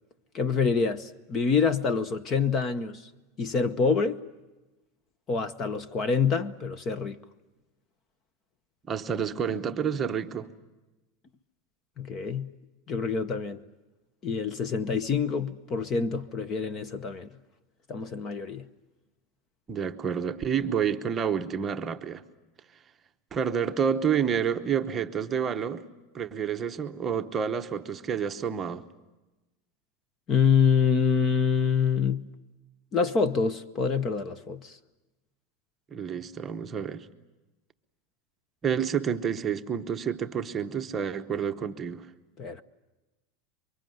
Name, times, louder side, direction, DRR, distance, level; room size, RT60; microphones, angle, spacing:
voice 1, 0.3-3.1 3.4-4.2 5.3-7.2 12.0-12.5 12.9-13.6 14.2-17.3 17.9-18.7 30.3-32.3 32.9-34.8 42.4-42.6, left 5 dB, 25° left, 0.8 m, -26 dB
voice 2, 8.9-10.5 19.7-22.2 23.3-25.8 26.1-28.8 35.9-37.1 38.6-42.1, right 7 dB, 20° right, 0.9 m, -29 dB
28.0 x 24.0 x 7.8 m
supercardioid pair, 165°, 0 cm